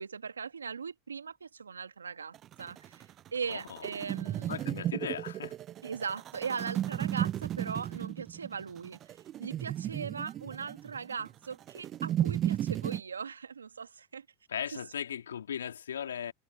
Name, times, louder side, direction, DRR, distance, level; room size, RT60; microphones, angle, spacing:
voice 1, 0.0-4.6 5.8-14.2 14.7-14.8, right 6 dB, 90° right, 1.6 m, -39 dB
sound 1, 2.3-13.0, right 12 dB, 40° right, 0.3 m, -34 dB
voice 2, 3.5-3.9 4.5-5.6 14.5-16.3, left 8 dB, 80° left, 2.8 m, -37 dB
hypercardioid pair, 90°, 0 cm